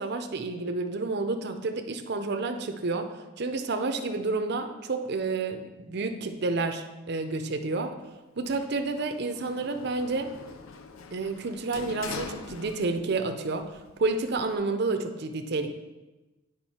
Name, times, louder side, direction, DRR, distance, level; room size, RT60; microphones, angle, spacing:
voice 1, 0.0-8.0 8.4-10.3 11.1-13.7 14.0-15.7, right 3 dB, 55° right, 6 dB, 0.5 m, -30 dB
Sliding door, 8.5-13.3 13.6-14.6, left 4 dB, 90° left, 0.6 m, -43 dB
8.9 x 5.0 x 4.2 m, 1.1 s
head